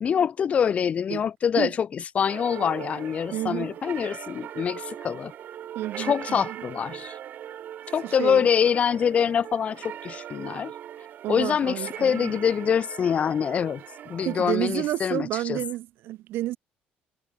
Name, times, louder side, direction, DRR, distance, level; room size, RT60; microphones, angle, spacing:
voice 1, 0.0-5.3 6.0-7.2 7.9-10.7 11.3-15.6, left 7 dB, 35° left, 1.1 m, -25 dB
sound 1, 2.3-14.6, right 10 dB, 50° right, 2.1 m, -40 dB
voice 2, 3.3-3.7 5.7-6.6 8.0-8.5 11.2-12.4 14.2-16.6, right 15 dB, 75° right, 1.3 m, -30 dB
cardioid pair, 150°, 4 cm